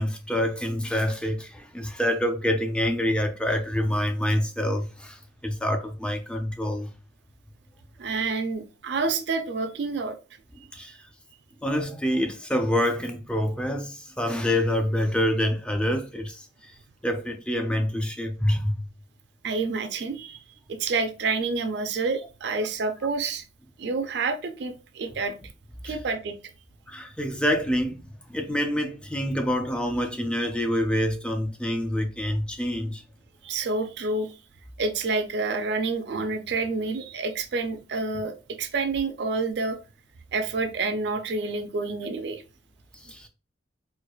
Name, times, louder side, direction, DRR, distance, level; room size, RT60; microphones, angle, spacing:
voice 1, 0.0-6.9 10.7-11.0 11.6-16.8 17.0-18.7 25.8-26.0 26.9-33.0 42.9-43.3, equal, 5° left, 0.4 m, -27 dB
voice 2, 8.0-10.2 19.4-20.4 20.7-23.4 23.8-25.4 25.8-26.3 33.4-34.4 34.8-39.8 40.3-42.4, right 3 dB, 60° right, 0.4 m, -28 dB
4.4 x 2.4 x 2.3 m
head